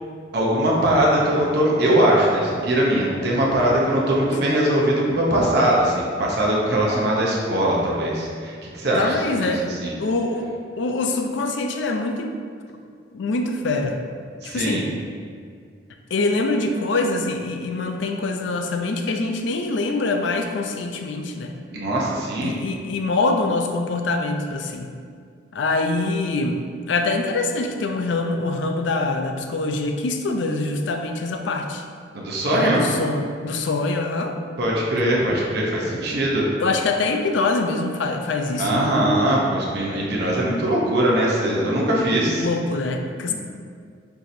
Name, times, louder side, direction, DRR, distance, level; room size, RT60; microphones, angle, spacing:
voice 1, 0.3-9.9 14.4-14.8 21.7-22.5 32.1-32.8 34.6-36.4 38.6-42.5 43.3-43.4, right 1 dB, 60° right, -4 dB, 0.7 m, -21 dB
voice 2, 9.0-9.7 10.0-10.5 10.8-12.4 13.1-14.0 14.4-14.9 16.1-21.5 22.4-24.9 25.5-26.6 26.9-31.8 32.5-34.4 34.9-35.0 36.6-38.8 42.3-43.3, left 3 dB, 75° left, 4 dB, 0.4 m, -24 dB
4.6 x 4.1 x 2.6 m, 2.2 s
head